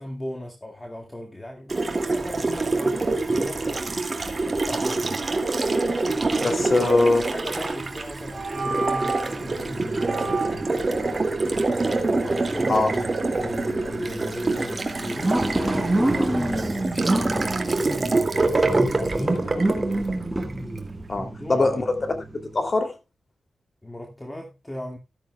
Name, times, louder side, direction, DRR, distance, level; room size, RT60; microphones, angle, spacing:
voice 1, 0.0-5.2 6.3-6.9 7.3-10.7 12.1-19.7 21.2-21.9 23.8-25.0, left 1 dB, 15° left, 2.0 m, -37 dB
Water tap faucet, 1.7-20.9, right 3 dB, 35° right, 2.3 m, -26 dB
voice 2, 6.4-7.3 12.7-12.9 21.1-21.8 22.3-22.9, left 3 dB, 40° left, 2.8 m, -22 dB
sound 1, 7.6-7.9 8.3-9.4 10.0-10.8, right 3 dB, 55° right, 5.1 m, -30 dB
sound 2, 9.4-22.6, right 1 dB, 10° right, 3.7 m, -29 dB
14.0 x 13.0 x 2.3 m
cardioid pair, 80°, 0 cm